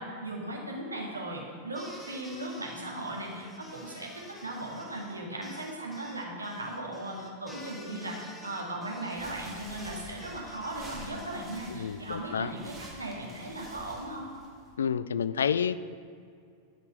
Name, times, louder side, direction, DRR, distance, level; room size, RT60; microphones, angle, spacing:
voice 1, 0.0-14.3, right 1 dB, 80° right, -2 dB, 2.1 m, -37 dB
sound 1, 1.7-11.7, left 1 dB, 5° left, 1.4 m, -50 dB
sound 2, 9.1-14.7, equal, 10° right, 2.1 m, -48 dB
voice 2, 11.7-12.5 14.8-15.8, left 7 dB, 70° left, 16 dB, 0.3 m, -29 dB
12.0 x 5.2 x 6.4 m, 2.4 s
figure-of-eight pair, 90°, 0 cm